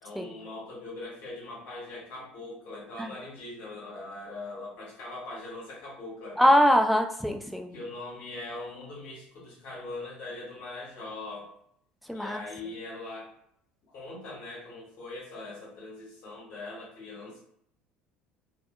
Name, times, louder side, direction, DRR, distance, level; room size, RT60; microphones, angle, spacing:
voice 1, 0.0-6.5 7.7-11.5 12.1-13.3 13.9-17.4, left 2 dB, 55° left, -5 dB, 1.1 m, -41 dB
voice 2, 6.4-7.7 12.1-12.4, equal, ahead, 3 dB, 0.4 m, -22 dB
2.6 x 2.3 x 2.3 m, 0.70 s
hypercardioid pair, 65°, 5 cm